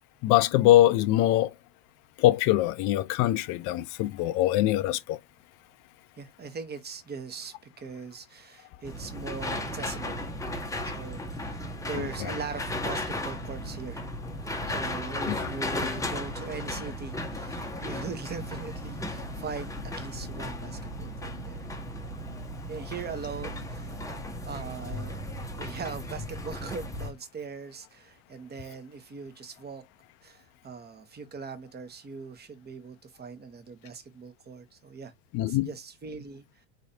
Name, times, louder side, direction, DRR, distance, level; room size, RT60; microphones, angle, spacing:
voice 1, 0.2-1.5 2.2-5.2 15.3-15.5 35.3-35.7, left 14 dB, 45° left, 0.6 m, -23 dB
voice 2, 6.2-10.3 10.6-14.0 14.4-21.7 22.7-24.1 24.4-25.2 25.5-29.8 30.2-35.1 35.5-36.7, right 5 dB, 20° right, 1.2 m, -40 dB
sound 1, 8.8-27.1, left 1 dB, 5° left, 0.9 m, -35 dB
4.0 x 3.1 x 2.8 m
hypercardioid pair, 90°, 44 cm